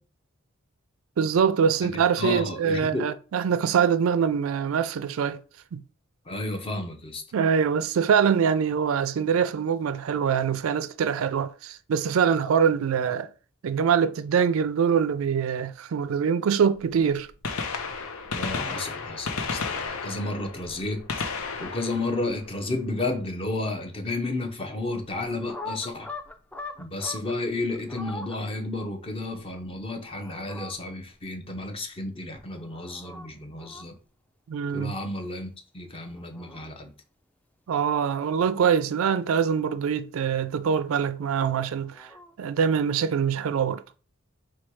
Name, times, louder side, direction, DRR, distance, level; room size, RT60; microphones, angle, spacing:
voice 1, 1.2-5.4 5.7-5.8 7.3-13.3 13.6-17.3 34.5-35.0 37.7-42.1 42.4-43.8, right 7 dB, 75° right, 0.4 m, -24 dB
voice 2, 1.8-3.1 6.3-7.2 18.3-21.0 21.3-26.1 26.8-34.0 34.7-36.9, left 2 dB, 25° left, 0.7 m, -32 dB
Gunshot gunfire, 16.7-16.8 17.3-23.2 25.1-25.2 26.2-26.3 27.9-28.0 29.4-29.5 29.7-29.8, left 4 dB, 90° left, 0.7 m, -33 dB
sound 1, 25.3-27.3 27.7-28.4 30.0-30.7 32.4-33.3 33.6-33.8 35.9-36.6 38.2-39.1 41.5-42.4, left 3 dB, 5° left, 0.3 m, -42 dB
4.3 x 2.3 x 4.6 m
head